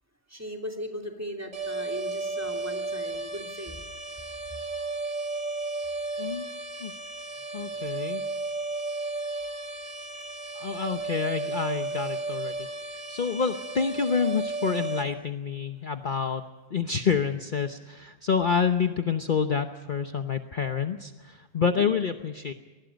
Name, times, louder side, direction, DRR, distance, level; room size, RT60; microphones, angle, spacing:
voice 1, 0.3-3.8 7.6-8.1 21.6-21.8, equal, 10° right, 3 dB, 2.8 m, -38 dB
sound 1, 1.5-15.0, right 3 dB, 70° right, 4.3 m, -34 dB
voice 2, 7.5-8.2 10.6-12.7 13.1-16.4 16.7-22.5, left 6 dB, 40° left, 7 dB, 1.0 m, -28 dB
25.5 x 20.0 x 5.2 m, 1.3 s
omnidirectional pair, 1.4 m